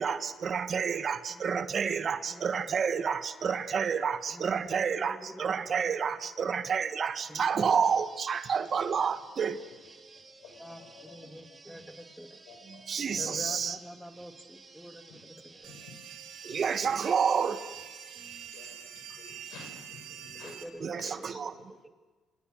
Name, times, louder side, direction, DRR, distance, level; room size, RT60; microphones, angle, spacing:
voice 1, 0.0-9.6 12.9-13.8 16.4-17.6 20.8-21.5, right 6 dB, 55° right, 10 dB, 1.5 m, -29 dB
voice 2, 2.0-2.7 4.3-6.1 7.3-7.8 8.6-8.7 10.6-12.4 13.2-15.8 16.5-16.6 20.4-21.8, equal, ahead, 5 dB, 2.9 m, -47 dB
sound 1, 7.8-18.5, right 3 dB, 35° right, 6.4 m, -54 dB
voice 3, 10.4-11.2 12.5-13.6 15.7-15.9 16.5-16.6 18.5-20.6 21.0-21.1, left 5 dB, 80° left, 5 dB, 5.6 m, -51 dB
sound 2, 15.6-20.6, right 9 dB, 85° right, 2.7 m, -46 dB
28.5 x 25.0 x 6.6 m, 1.3 s
supercardioid pair, 60°, 0 cm